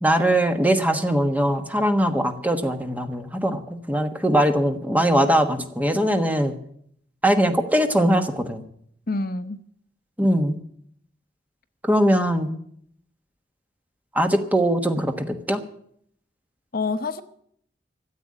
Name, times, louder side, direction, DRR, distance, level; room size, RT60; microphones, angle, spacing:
voice 1, 0.0-6.5 7.2-8.6 10.2-10.6 11.8-12.5 14.1-15.6, right 1 dB, 10° right, 6 dB, 1.2 m, -21 dB
voice 2, 9.1-9.6 16.7-17.2, left 3 dB, 55° left, 11 dB, 0.8 m, -26 dB
13.5 x 8.1 x 9.6 m, 0.67 s
head